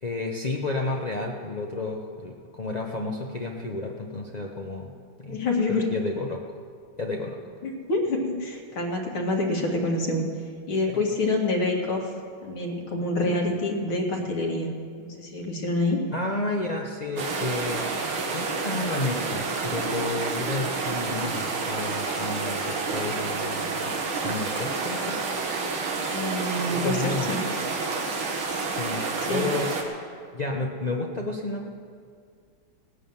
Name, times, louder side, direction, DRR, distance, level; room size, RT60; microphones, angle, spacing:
voice 1, 0.0-4.9 5.2-5.4 5.7-6.4 7.0-7.4 10.9-11.0 16.1-17.9 18.3-23.9 24.2-25.2 26.7-27.3 28.6-29.8 30.3-31.8, left 2 dB, 55° left, 0 dB, 0.4 m, -31 dB
voice 2, 5.3-5.9 7.6-10.2 10.7-12.1 12.4-14.7 15.0-16.0 26.1-27.4 29.3-29.5, left 2 dB, 85° left, 0 dB, 2.8 m, -27 dB
sound 1, 17.2-29.8, right 4 dB, 85° right, 2.4 m, -29 dB
18.0 x 10.0 x 7.1 m, 2.1 s
omnidirectional pair, 2.2 m